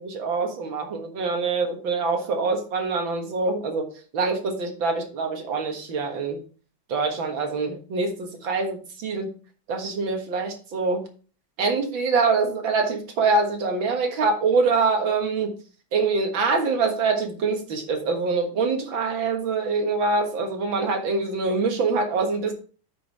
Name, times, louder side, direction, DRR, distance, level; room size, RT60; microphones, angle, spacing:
voice 1, 0.1-3.9 4.1-6.4 6.9-9.3 9.7-11.0 11.6-15.5 15.9-22.5, right 4 dB, 70° right, 4 dB, 2.2 m, -24 dB
9.3 x 5.5 x 4.1 m, 0.38 s
omnidirectional pair, 2.2 m